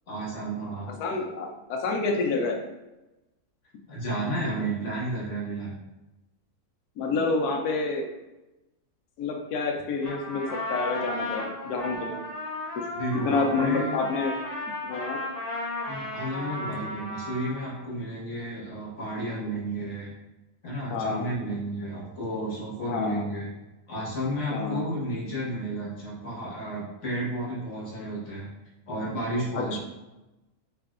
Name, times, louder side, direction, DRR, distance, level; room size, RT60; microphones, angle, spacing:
voice 1, 0.1-0.9 3.9-5.7 12.9-13.9 15.9-20.1 20.6-23.5 23.9-28.5 28.9-29.8, right 1 dB, 55° left, -6 dB, 1.5 m, -32 dB
voice 2, 1.0-2.6 7.0-8.1 9.2-12.2 13.3-14.3 14.8-15.2 20.9-21.3 22.9-23.3 24.5-24.8 29.5-29.8, left 3 dB, 85° left, 2 dB, 1.2 m, -28 dB
Trumpet, 10.0-17.9, left 2 dB, 30° left, 0.8 m, -34 dB
3.7 x 3.3 x 2.4 m, 0.99 s
omnidirectional pair, 1.6 m